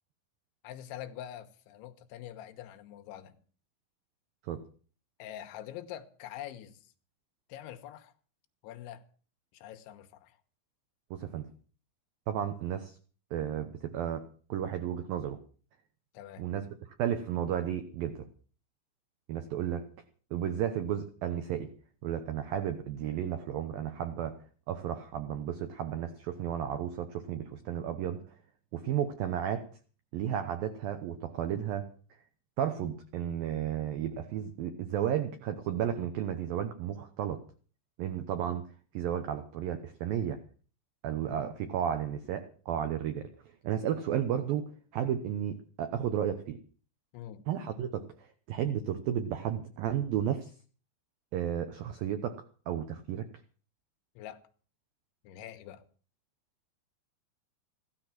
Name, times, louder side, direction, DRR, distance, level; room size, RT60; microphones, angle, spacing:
voice 1, 0.6-3.4 5.2-6.9 7.5-8.1 8.6-9.0 9.5-10.4 16.1-16.5 47.1-47.4 54.2-54.4 55.2-55.8, left 11 dB, 75° left, 3.3 m, -45 dB
voice 2, 11.1-11.5 12.3-13.0 13.3-15.4 16.4-16.7 17.0-18.3 19.3-19.9 20.3-21.7 22.0-24.4 24.7-28.2 28.7-29.7 30.1-31.9 32.6-37.4 38.0-38.6 38.9-40.4 41.0-43.3 43.6-46.6 47.5-50.5 51.3-53.3, right 9 dB, 85° right, 2.0 m, -33 dB
16.0 x 13.0 x 6.0 m
omnidirectional pair, 5.8 m